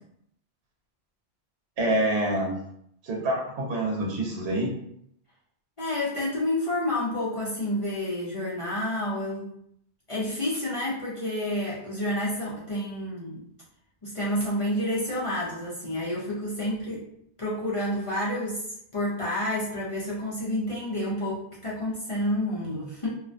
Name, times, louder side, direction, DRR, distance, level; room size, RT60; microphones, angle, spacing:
voice 1, 1.8-2.6 3.0-4.7, right 1 dB, 75° right, -1 dB, 0.9 m, -26 dB
voice 2, 5.8-9.5 10.1-13.4 14.0-17.0 17.4-23.1, left 1 dB, 40° left, -8 dB, 0.5 m, -29 dB
2.3 x 2.1 x 2.5 m, 0.73 s
omnidirectional pair, 1.1 m